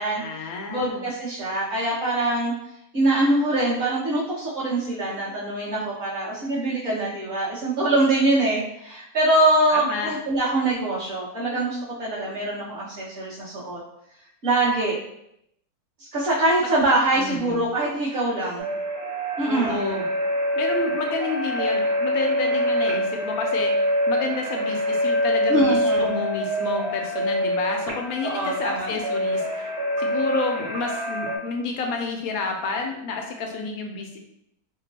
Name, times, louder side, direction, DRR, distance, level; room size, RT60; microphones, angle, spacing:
voice 1, 0.1-1.1 9.7-10.1 17.2-17.6 19.4-20.1 20.6-29.7 30.0-34.2, left 4 dB, 70° left, 2 dB, 1.0 m, -30 dB
voice 2, 0.7-2.5 2.9-13.8 14.4-15.0 16.0-18.6 19.4-19.9 25.5-26.2 28.2-29.0, right 2 dB, 40° right, -12 dB, 1.7 m, -23 dB
sound 1, 18.6-31.4, equal, 85° right, 1.4 m, -25 dB
3.7 x 2.2 x 4.0 m, 0.80 s
omnidirectional pair, 1.7 m